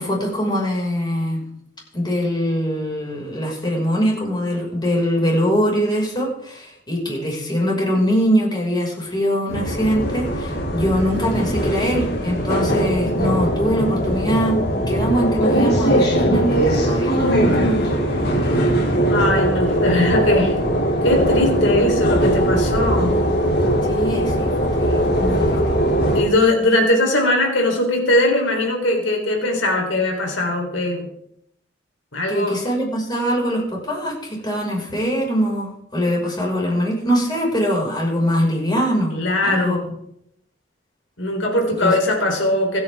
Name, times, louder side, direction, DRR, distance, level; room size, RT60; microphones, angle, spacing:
voice 1, 0.0-1.4 1.9-14.6 14.9-18.4 23.8-25.6 32.3-39.2 39.4-39.8 41.8-41.9, equal, 25° left, -2 dB, 5.7 m, -22 dB
sound 1, 9.5-26.2, right 1 dB, 60° left, 3.1 m, -20 dB
voice 2, 19.1-20.5 21.0-23.2 25.2-25.6 26.1-31.1 32.1-32.6 39.1-39.8 41.2-42.8, left 2 dB, 80° left, 1 dB, 3.9 m, -20 dB
26.0 x 9.6 x 3.7 m, 0.75 s
head